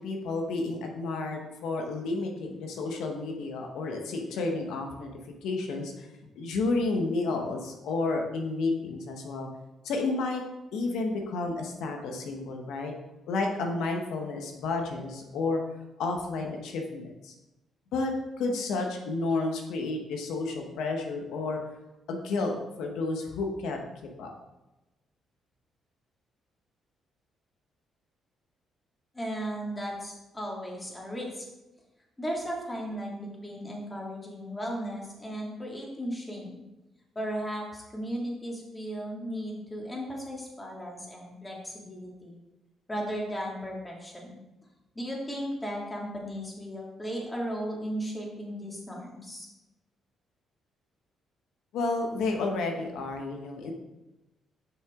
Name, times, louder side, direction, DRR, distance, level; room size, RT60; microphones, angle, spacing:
voice 1, 0.0-5.1 5.4-6.1 6.4-9.5 9.8-10.4 10.7-12.9 13.3-15.6 16.0-17.3 17.9-18.1 18.4-21.6 22.1-23.8 24.2-24.3 51.7-53.7, left 3 dB, 85° left, 3 dB, 1.1 m, -31 dB
voice 2, 29.1-31.4 32.2-36.6 37.2-42.4 42.9-44.4 44.9-49.5, equal, 15° left, -2 dB, 2.2 m, -36 dB
6.4 x 6.1 x 3.7 m, 0.99 s
cardioid pair, 90°, 0 cm